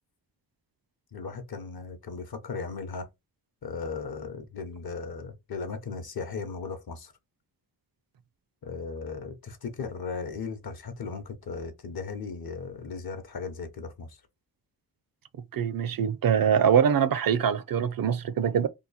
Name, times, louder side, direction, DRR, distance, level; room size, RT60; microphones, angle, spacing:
voice 1, 1.1-3.1 3.6-7.1 8.6-14.2, left 5 dB, 60° left, 0.8 m, -37 dB
voice 2, 15.5-18.7, right 8 dB, 55° right, 0.5 m, -23 dB
2.9 x 2.3 x 4.0 m
cardioid pair, 75°, 41 cm